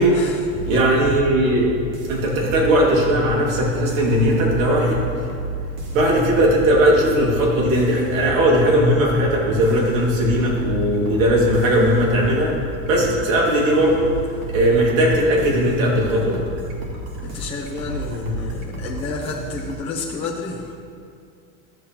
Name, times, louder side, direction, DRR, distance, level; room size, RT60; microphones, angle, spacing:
voice 1, 0.1-0.7 13.0-13.2 17.2-20.8, left 4 dB, 15° left, -4 dB, 0.6 m, -31 dB
sound 1, 0.5-19.7, right 2 dB, 55° right, 1.8 m, -32 dB
voice 2, 0.6-1.7 2.1-5.1 5.9-12.5 12.9-14.1 14.5-16.4, equal, 90° right, -3 dB, 2.3 m, -18 dB
13.0 x 6.8 x 2.9 m, 2.4 s
supercardioid pair, 150°, 39 cm